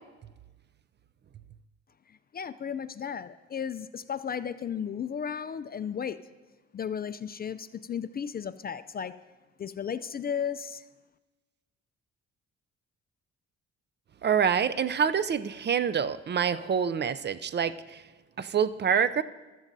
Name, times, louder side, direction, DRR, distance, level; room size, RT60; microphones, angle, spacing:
voice 1, 2.3-6.2 6.7-9.1 9.6-10.8, left 7 dB, 30° left, 13 dB, 0.4 m, -34 dB
voice 2, 14.2-18.0 18.4-19.2, right 7 dB, 35° right, 15 dB, 0.4 m, -26 dB
15.5 x 12.5 x 2.7 m, 1.2 s
cardioid pair, 90°, 30 cm